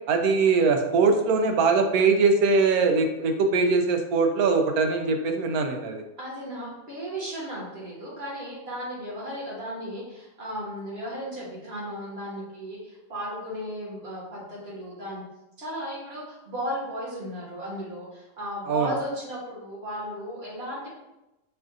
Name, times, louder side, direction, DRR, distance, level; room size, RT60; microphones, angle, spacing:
voice 1, 0.1-6.0 18.7-18.9, right 4 dB, 90° right, 4 dB, 1.1 m, -22 dB
voice 2, 6.2-15.2 15.6-20.9, equal, 45° right, -6 dB, 1.6 m, -35 dB
5.6 x 2.5 x 2.5 m, 0.95 s
omnidirectional pair, 1.5 m